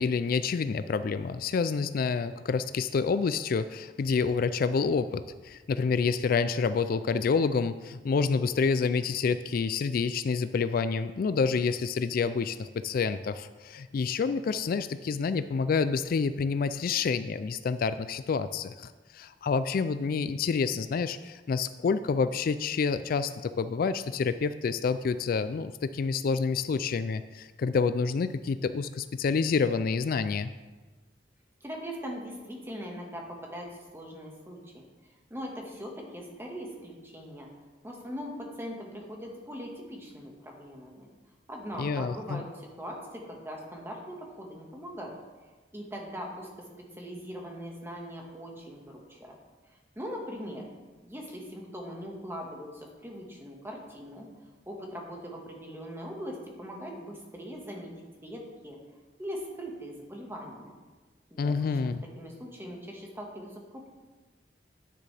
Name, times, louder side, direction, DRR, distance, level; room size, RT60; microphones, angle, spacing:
voice 1, 0.0-30.5 41.8-42.4 61.4-62.0, left 5 dB, 55° left, 12 dB, 0.3 m, -28 dB
voice 2, 31.6-34.8 35.3-37.5 37.8-41.1 41.5-45.1 45.7-46.7 47.0-49.3 49.7-50.6 51.0-54.3 54.7-58.8 59.2-60.7 61.3-61.9 62.2-63.9, equal, 15° right, 0 dB, 1.6 m, -41 dB
10.0 x 9.9 x 3.4 m, 1.3 s
head